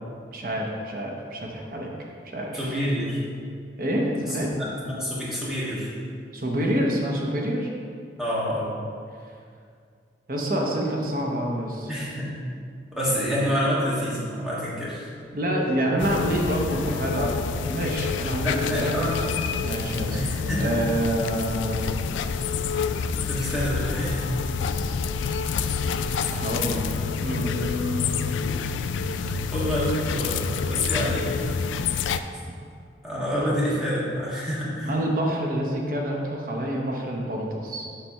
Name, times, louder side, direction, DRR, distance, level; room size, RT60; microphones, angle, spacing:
voice 1, 0.3-2.8 3.8-4.5 6.3-7.7 10.3-11.9 13.1-13.4 15.3-19.0 19.6-21.8 26.3-28.3 34.8-37.9, equal, 50° right, -1 dB, 0.8 m, -27 dB
voice 2, 2.5-3.2 4.6-5.9 8.2-8.7 11.9-12.3 12.9-15.1 18.4-19.1 20.1-20.7 23.3-24.2 25.5-25.7 29.5-31.4 33.0-34.9, equal, ahead, -8 dB, 1.5 m, -27 dB
sound 1, 16.0-32.2, left 5 dB, 85° left, 0.3 m, -28 dB
7.3 x 3.4 x 5.5 m, 2.2 s
head